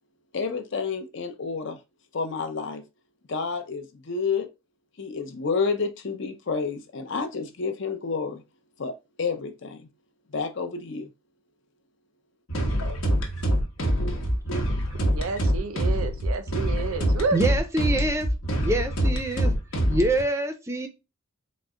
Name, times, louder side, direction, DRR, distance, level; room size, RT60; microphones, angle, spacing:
voice 1, 0.3-1.8 2.1-2.8 3.3-4.5 5.0-8.4 8.8-8.9 9.2-9.9 10.3-11.1, left 5 dB, 55° left, 0.6 m, -29 dB
sound 1, 12.5-20.2, equal, 80° left, 1.0 m, -25 dB
voice 2, 15.1-17.4, right 4 dB, 80° right, 0.5 m, -30 dB
voice 3, 17.3-18.3 18.6-19.5 19.9-20.9, right 2 dB, 15° right, 0.4 m, -25 dB
3.9 x 2.1 x 3.6 m
head